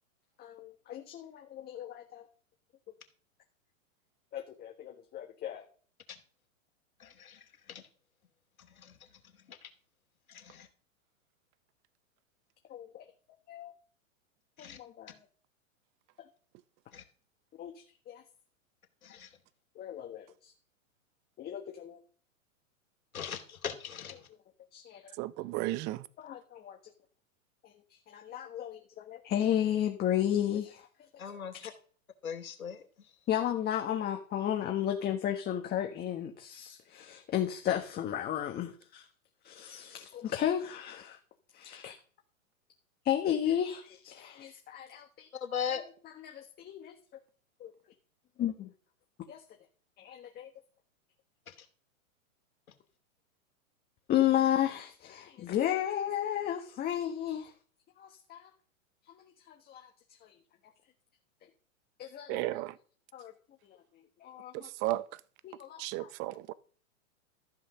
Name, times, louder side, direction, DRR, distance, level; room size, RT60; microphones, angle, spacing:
voice 1, 0.4-2.2 4.3-5.6 12.7-13.0 13.5-13.7 14.8-15.2 17.6-17.7 18.1-18.2 19.8-20.5 21.4-22.0 24.7-25.1 26.2-26.8 28.1-30.9 33.3-39.0 39.4-41.2 41.5-41.9 43.0-45.3 46.2-46.9 47.6-47.7 48.4-48.7 49.3-49.4 50.0-50.5 54.1-57.5 58.0-58.5 59.5-59.9 60.2-60.3 62.0-62.6 63.1-63.3 63.7-63.8 64.2-64.7 65.4-66.1, left 11 dB, 25° left, 1.4 m, -33 dB
voice 2, 7.0-7.8 8.6-9.7 10.3-10.7 14.6-14.8 16.9-17.0 19.0-19.4 23.1-24.3 31.2-31.7 32.2-33.1 45.3-45.8 51.5-51.6, left 8 dB, 85° left, 2.8 m, -40 dB
voice 3, 25.2-26.0 62.3-62.7 64.5-65.1 65.8-66.5, right 18 dB, 25° right, 0.6 m, -34 dB
14.0 x 6.2 x 6.3 m
hypercardioid pair, 130°, 41 cm